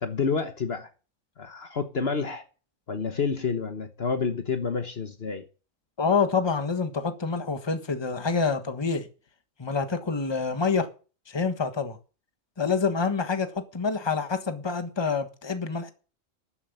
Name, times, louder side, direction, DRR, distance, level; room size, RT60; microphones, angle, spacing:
voice 1, 0.0-0.9 1.4-2.4 2.9-5.4, left 5 dB, 50° left, 1.3 m, -29 dB
voice 2, 6.0-9.1 9.6-10.9 11.3-12.0 12.6-15.9, left 5 dB, 20° left, 1.3 m, -27 dB
12.5 x 7.6 x 8.0 m
omnidirectional pair, 1.4 m